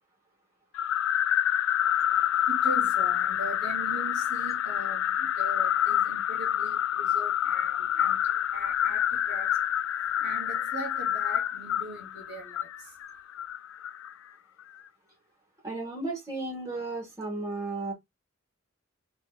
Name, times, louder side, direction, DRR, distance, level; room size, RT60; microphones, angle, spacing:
sound 1, 0.7-14.1, left 10 dB, 85° left, 0.3 m, -27 dB
voice 1, 2.0-9.7 10.0-13.0, right 3 dB, 60° right, 1.5 m, -41 dB
voice 2, 15.6-17.9, right 2 dB, 15° right, 2.5 m, -34 dB
4.4 x 3.3 x 2.5 m
head